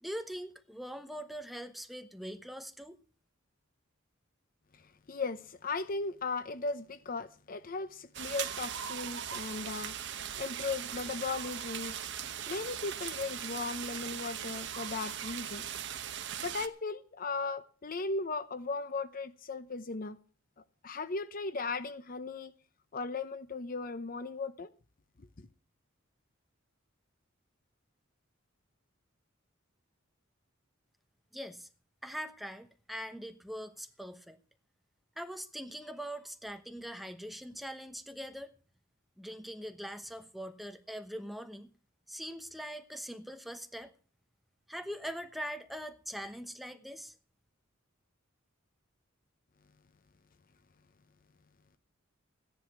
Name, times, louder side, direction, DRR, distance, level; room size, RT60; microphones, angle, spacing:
voice 1, 0.0-3.0 31.3-31.7 32.0-34.4 35.2-38.5 39.2-41.7 42.1-43.9 44.7-47.2, equal, ahead, 1.0 m, -42 dB
voice 2, 5.1-12.0 12.5-15.7 16.4-20.2 20.8-22.5 22.9-24.7 25.2-25.5, left 3 dB, 45° left, 0.7 m, -37 dB
sound 1, 8.1-16.7, right 9 dB, 60° right, 1.0 m, -39 dB
14.5 x 10.5 x 6.0 m
head